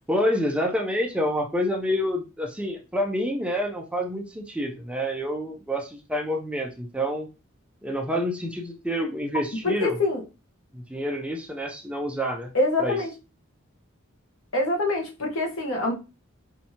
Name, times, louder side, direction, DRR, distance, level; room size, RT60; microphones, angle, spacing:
voice 1, 0.1-7.3 7.8-10.0 10.7-12.5 12.8-13.0, equal, 5° right, 0.5 m, -28 dB
voice 2, 9.6-10.2 12.5-13.1 14.5-15.9, left 2 dB, 70° left, 1.0 m, -25 dB
4.5 x 2.7 x 2.8 m
head